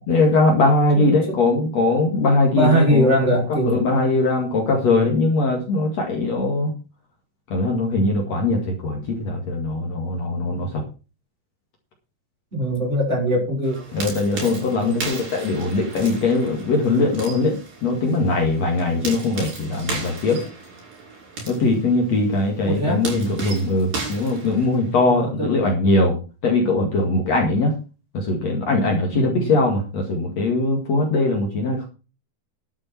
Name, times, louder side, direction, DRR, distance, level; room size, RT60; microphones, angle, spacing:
voice 1, 0.1-3.2 3.5-6.7 7.5-10.8 13.9-20.4 21.5-26.2 26.4-27.7 28.1-31.8, left 2 dB, 50° left, 1 dB, 3.2 m, -21 dB
voice 2, 1.1-1.4 2.6-3.8 12.5-13.8 14.4-15.1 22.6-23.1 25.1-25.5 29.1-29.5, equal, 15° right, -2 dB, 6.2 m, -22 dB
sound 1, 13.6-25.1, right 3 dB, 70° right, 7.8 m, -35 dB
12.5 x 8.1 x 6.0 m, 0.33 s
omnidirectional pair, 4.2 m